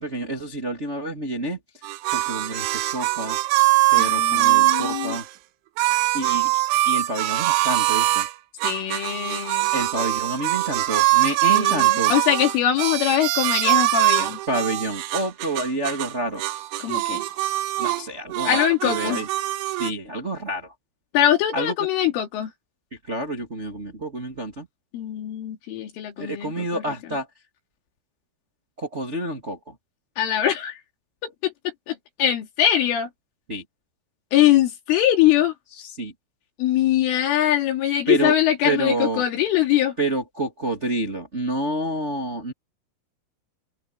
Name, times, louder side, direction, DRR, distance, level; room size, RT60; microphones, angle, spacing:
voice 1, 0.0-3.4 3.9-5.2 6.1-8.3 9.7-12.1 14.5-16.4 17.8-19.3 19.8-20.7 21.5-21.7 22.9-24.7 26.2-27.3 28.8-29.7 33.5-33.6 35.7-36.1 38.1-38.3 38.6-39.2 40.0-42.5, right 2 dB, 40° right, 1.0 m, -28 dB
sound 1, 1.8-5.2 5.8-8.3 8.6-16.1 16.4-18.0 18.3-19.9, right 18 dB, 80° right, 3.3 m, -22 dB
voice 2, 4.0-5.2 8.6-9.7 11.5-14.4 16.8-17.2 18.5-19.2 21.1-22.5 24.9-26.8 30.2-30.8 31.2-31.5 31.9-33.1 34.3-35.5 36.6-39.9, left 11 dB, 75° left, 5.4 m, -22 dB
omnidirectional pair, 5.8 m